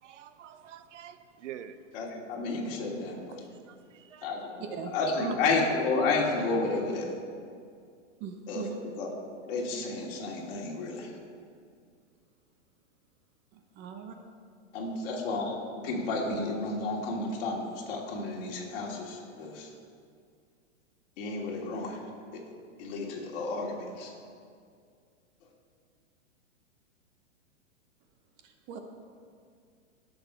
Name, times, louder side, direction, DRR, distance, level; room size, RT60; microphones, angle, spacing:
voice 1, 0.0-1.8 3.3-4.3, right 10 dB, 70° right, 11 dB, 0.8 m, -47 dB
voice 2, 1.9-3.4 4.2-7.1 8.5-8.7 9.0-11.2 14.7-19.7 21.2-22.4 22.8-24.1, left 3 dB, 50° left, -1 dB, 2.6 m, -32 dB
voice 3, 5.2-5.5 8.2-8.8 13.5-14.2 28.4-28.8, right 6 dB, 30° right, 5 dB, 0.9 m, -39 dB
17.0 x 6.7 x 4.6 m, 2.2 s
hypercardioid pair, 140°, 37 cm